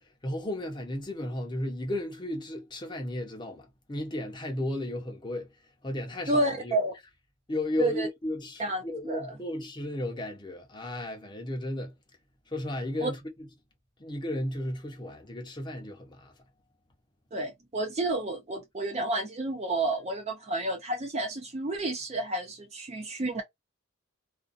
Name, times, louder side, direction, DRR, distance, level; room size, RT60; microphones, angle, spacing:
voice 1, 0.2-5.5 5.8-6.7 7.5-11.9 12.5-13.2 14.0-16.3, left 1 dB, 20° left, 0.6 m, -34 dB
voice 2, 6.3-6.9 7.8-8.1 8.6-9.3 13.0-13.1 17.3-23.4, right 2 dB, 30° right, 0.4 m, -30 dB
2.5 x 2.2 x 2.4 m
head